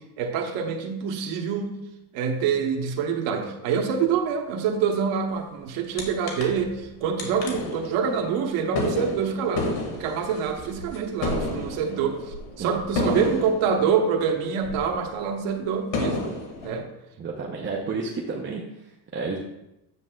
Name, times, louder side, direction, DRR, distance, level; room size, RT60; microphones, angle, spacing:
voice 1, 0.0-1.8 2.1-9.7 10.0-16.3 16.6-16.9 17.6-17.8, right 6 dB, 90° right, 4 dB, 1.2 m, -26 dB
sound 1, 6.0-6.1 6.3-6.9 7.2-15.1 15.5-15.6 15.9-16.8, left 3 dB, 80° left, 2.2 m, -31 dB
voice 2, 17.2-19.4, right 4 dB, 25° right, -1 dB, 0.7 m, -32 dB
9.5 x 7.5 x 2.3 m, 0.87 s
cardioid pair, 145°, 45 cm